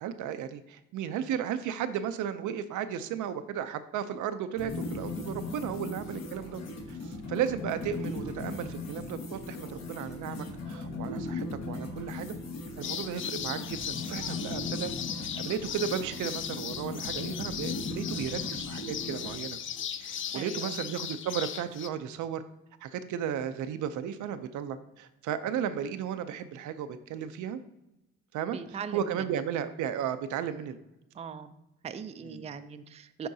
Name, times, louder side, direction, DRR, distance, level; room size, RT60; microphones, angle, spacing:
voice 1, 0.0-6.6 6.9-12.3 12.8-19.6 20.0-22.4 22.8-27.6 28.3-30.8 32.2-32.5, right 9 dB, 75° right, 10 dB, 0.6 m, -34 dB
sound 1, 4.6-19.4, left 3 dB, 60° left, 1.4 m, -38 dB
sound 2, 12.8-21.9, left 9 dB, 40° left, 0.4 m, -37 dB
voice 2, 20.3-20.7 28.5-29.0 31.2-31.6 31.8-33.3, right 6 dB, 20° right, 10 dB, 0.4 m, -40 dB
10.0 x 3.7 x 2.7 m, 0.91 s
cardioid pair, 90°, 30 cm